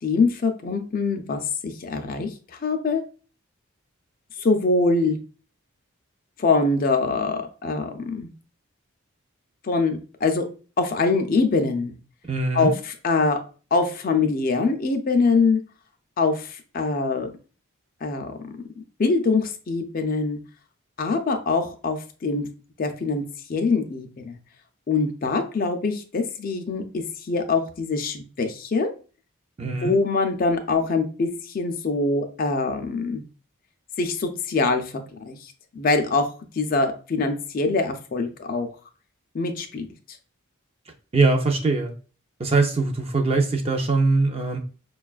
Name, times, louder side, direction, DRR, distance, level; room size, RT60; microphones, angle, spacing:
voice 1, 0.0-2.3 2.6-3.0 4.4-5.2 6.4-8.3 9.6-10.4 10.8-12.0 12.5-13.4 13.7-15.6 16.2-17.3 18.0-18.6 19.0-20.4 21.0-22.5 22.8-23.2 23.5-24.4 24.9-28.9 29.6-33.2 34.0-34.9 35.3-38.7 39.3-39.9, left 3 dB, 40° left, 6 dB, 0.4 m, -24 dB
voice 2, 12.3-12.7 29.6-30.0 41.1-41.9 42.4-44.6, right 3 dB, 25° right, 3 dB, 0.4 m, -22 dB
5.1 x 2.3 x 2.3 m, 0.37 s
head